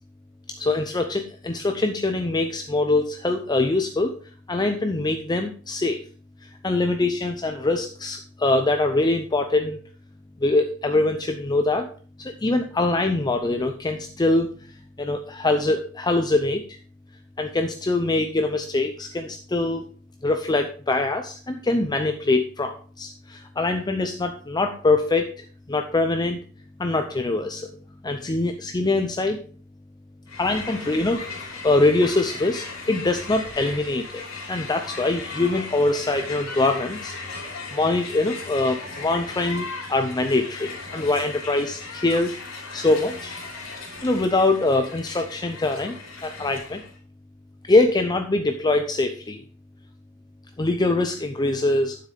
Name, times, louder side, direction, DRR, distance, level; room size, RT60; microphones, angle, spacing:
voice 1, 0.5-4.1 4.5-6.0 6.4-9.8 10.4-11.9 12.2-16.8 17.4-19.8 20.2-26.4 26.8-27.7 28.0-29.4 30.4-43.4 44.0-46.8 47.7-49.4 50.6-52.1, left 2 dB, 20° left, 6 dB, 0.6 m, -23 dB
Crowd, 30.3-47.0, left 4 dB, 70° left, 3.4 m, -37 dB
9.4 x 7.6 x 3.4 m, 0.42 s
head